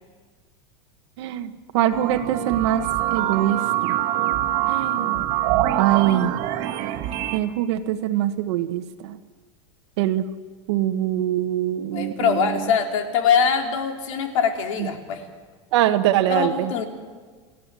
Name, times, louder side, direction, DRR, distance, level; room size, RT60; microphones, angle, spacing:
voice 1, 1.2-2.8 3.1-3.6 3.9-4.0 4.7-5.2 5.8-6.3 7.3-9.2 10.0-10.3 10.7-12.6 15.7-16.7, right 12 dB, 60° right, 7 dB, 1.3 m, -23 dB
sound 1, 1.9-7.4, right 13 dB, 40° right, 1.6 m, -24 dB
voice 2, 11.9-15.2 16.3-16.8, left 6 dB, 80° left, 3 dB, 3.6 m, -23 dB
29.0 x 16.0 x 7.6 m, 1.5 s
supercardioid pair, 175°, 16 cm